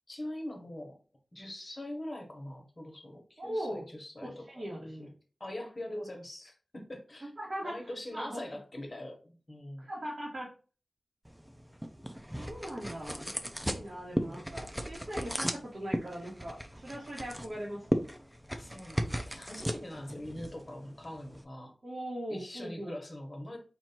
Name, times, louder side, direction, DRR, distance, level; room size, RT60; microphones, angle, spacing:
voice 1, 0.1-1.0 1.3-5.1 5.4-7.3 7.6-9.9 14.0-14.4 18.5-21.7 22.3-23.6, left 1 dB, 40° left, 2 dB, 1.4 m, -43 dB
voice 2, 3.4-3.8 4.2-5.1 7.4-7.8 8.1-8.5 9.8-10.5 12.4-13.3 13.6-17.8 21.8-23.0, right 1 dB, 60° right, -7 dB, 1.7 m, -40 dB
sound 1, 11.3-21.4, equal, 5° right, 0.6 m, -37 dB
4.4 x 2.7 x 4.4 m, 0.36 s
wide cardioid pair, 80°, 0 cm